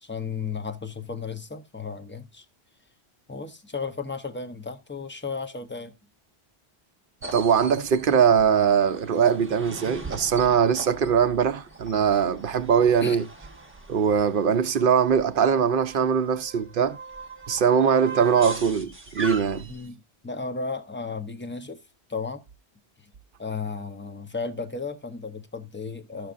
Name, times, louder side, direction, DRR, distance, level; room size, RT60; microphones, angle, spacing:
voice 1, 0.0-2.5 3.3-5.9 13.0-13.2 19.7-21.8 22.1-22.4 23.0-23.1 23.4-26.3, left 4 dB, 15° left, 0.4 m, -34 dB
sound 1, 7.2-19.9, right 3 dB, 10° right, 0.9 m, -40 dB
voice 2, 7.3-13.2 13.9-17.0 17.5-19.7, right 7 dB, 60° right, 0.7 m, -21 dB
14.0 x 6.3 x 2.4 m
omnidirectional pair, 1.1 m